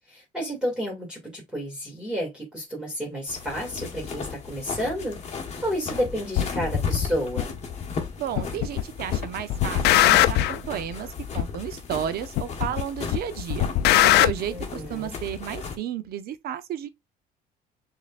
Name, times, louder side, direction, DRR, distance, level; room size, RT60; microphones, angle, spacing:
voice 1, 0.1-7.5 14.5-15.2, equal, 5° right, 2.4 m, -31 dB
sound 1, 3.3-15.8, left 6 dB, 40° left, 1.3 m, -34 dB
sound 2, 6.3-6.5 7.4-7.5 8.4-8.8 9.1-10.6 11.4-11.5 12.4-12.8 13.1-14.3, left 14 dB, 80° left, 0.5 m, -20 dB
voice 2, 8.2-13.7 14.0-16.9, right 10 dB, 65° right, 0.7 m, -33 dB
6.3 x 2.9 x 2.4 m
cardioid pair, 110°, 17 cm